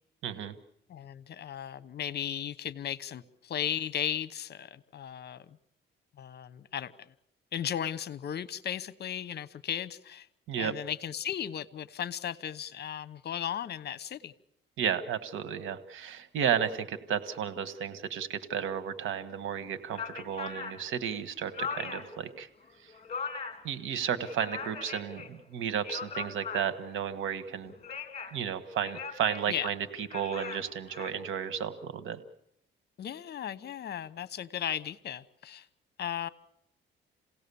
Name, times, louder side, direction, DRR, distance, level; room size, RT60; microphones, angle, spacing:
voice 1, 0.2-0.5 10.5-10.7 14.8-22.5 22.8-22.9 23.6-27.7 28.3-32.2, right 8 dB, 80° right, 1.5 m, -33 dB
voice 2, 0.9-5.5 6.2-7.1 7.5-10.3 10.6-14.3 29.5-29.7 33.0-35.7 36.0-36.3, left 9 dB, 55° left, 1.0 m, -36 dB
sound 1, 19.5-19.6 19.9-22.2 22.6-23.7 24.1-25.3 25.7-27.0 27.6-28.4 28.8-31.1, left 5 dB, 30° left, 3.2 m, -40 dB
28.0 x 17.5 x 7.0 m
cardioid pair, 90°, 20 cm